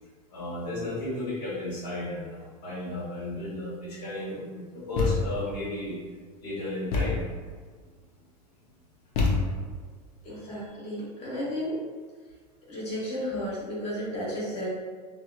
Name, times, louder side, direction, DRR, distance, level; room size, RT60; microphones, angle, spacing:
voice 1, 0.3-6.0 6.4-7.2, left 2 dB, 80° left, -7 dB, 1.2 m, -34 dB
Thump thud, 5.0-5.5 6.9-7.4 9.2-9.8, left 3 dB, 60° left, 0.5 m, -27 dB
voice 2, 10.2-11.8 12.7-14.7, equal, 30° left, -8 dB, 1.1 m, -33 dB
2.7 x 2.1 x 2.3 m, 1.5 s
hypercardioid pair, 115°, 21 cm